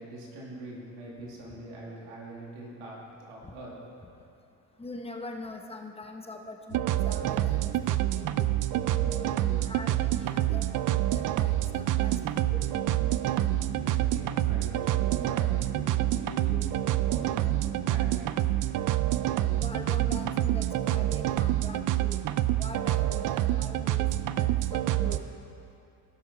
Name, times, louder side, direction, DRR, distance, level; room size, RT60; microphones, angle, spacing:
voice 1, 0.0-3.0 3.3-3.7 13.1-18.3, right 1 dB, 80° right, -3 dB, 2.7 m, -43 dB
voice 2, 4.8-8.5 8.9-12.7 19.6-22.2 22.6-25.3, left 2 dB, 15° left, 3 dB, 1.0 m, -43 dB
sound 1, 6.7-25.2, right 14 dB, 45° right, 0.5 m, -27 dB
16.5 x 6.4 x 4.2 m, 2.8 s
supercardioid pair, 90°, 44 cm